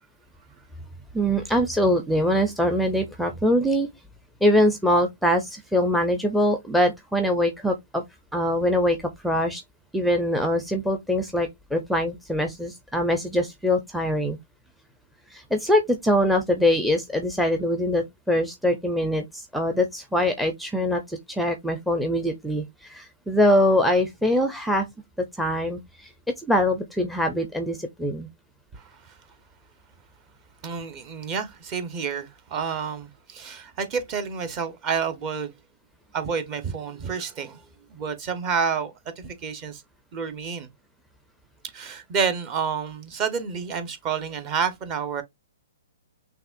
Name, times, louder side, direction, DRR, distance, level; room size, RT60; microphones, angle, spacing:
voice 1, 1.1-3.9 4.4-8.0 8.3-9.0 9.2-9.6 9.9-14.4 15.3-24.9 25.4-26.1 26.4-28.3, left 1 dB, ahead, 0.6 m, -23 dB
voice 2, 28.7-29.1 30.6-35.5 36.1-37.6 37.9-39.8 40.1-40.7 41.7-45.2, right 6 dB, 30° right, 1.0 m, -29 dB
5.8 x 2.9 x 2.5 m
hypercardioid pair, 140°, 0 cm